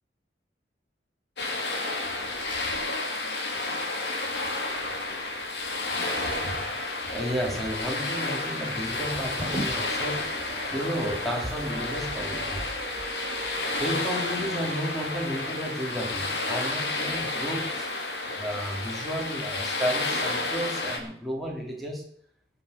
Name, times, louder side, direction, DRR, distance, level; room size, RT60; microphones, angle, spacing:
sound 1, 1.4-21.0, left 2 dB, 65° left, 3.0 m, -31 dB
voice 1, 6.7-10.4 10.7-12.7 13.8-17.9 18.3-22.0, equal, ahead, -2 dB, 3.5 m, -32 dB
sound 2, 8.9-14.1, right 2 dB, 30° right, 4.3 m, -39 dB
18.5 x 7.0 x 6.7 m, 0.63 s
head